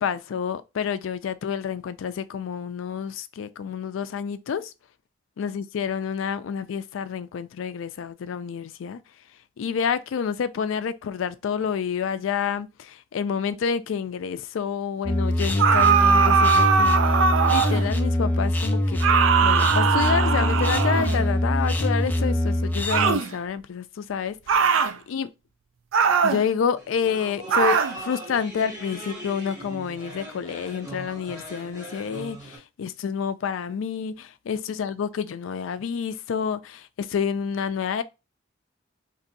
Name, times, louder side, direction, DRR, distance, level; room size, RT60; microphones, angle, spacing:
voice 1, 0.0-4.7 5.4-9.0 9.6-17.2 17.5-19.0 19.4-24.7 25.1-25.3 26.2-38.0, left 7 dB, 85° left, 0.3 m, -29 dB
sound 1, 15.0-23.1, left 1 dB, 10° left, 0.4 m, -23 dB
sound 2, 15.6-17.9 19.0-21.3 22.9-23.3 24.5-25.0 25.9-26.4 27.5-28.0, right 6 dB, 80° right, 0.4 m, -20 dB
sound 3, 26.8-32.6, right 1 dB, 20° right, 1.2 m, -40 dB
2.6 x 2.6 x 3.9 m
head